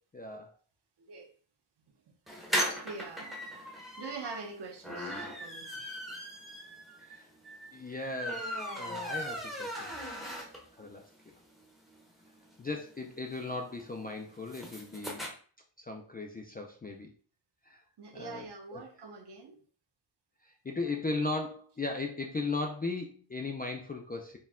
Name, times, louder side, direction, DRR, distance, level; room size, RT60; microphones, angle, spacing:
voice 1, 0.1-0.5 7.0-7.3 7.7-10.0 10.8-11.1 12.6-15.3 15.8-17.1 17.6-17.8 18.1-18.5 18.7-18.8 20.4-24.4, left 3 dB, 20° left, 2 dB, 0.3 m, -37 dB
voice 2, 1.0-1.3 2.3-2.6 2.8-3.4 4.0-5.7 18.0-19.6, right 4 dB, 60° right, 1 dB, 0.9 m, -44 dB
sound 1, 2.3-10.8 11.2-11.3 11.6-11.7 11.9-15.3, equal, ahead, 0.7 m, -38 dB
4.4 x 2.2 x 3.6 m, 0.42 s
wide cardioid pair, 160°, 46 cm